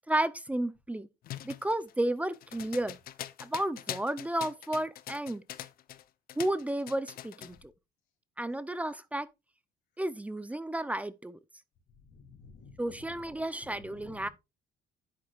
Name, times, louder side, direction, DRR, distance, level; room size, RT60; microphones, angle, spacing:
voice 1, 0.1-1.1 1.4-3.0 3.4-5.4 6.4-7.7 8.4-9.3 10.0-11.4 12.8-14.3, right 1 dB, 10° right, 0.6 m, -32 dB
sound 1, 1.2-6.0 6.3-7.6, left 12 dB, 60° left, 0.7 m, -43 dB
voice 2, 12.0-13.3 13.6-14.3, left 4 dB, 75° left, 2.9 m, -53 dB
10.5 x 7.6 x 2.4 m
cardioid pair, 110°, 17 cm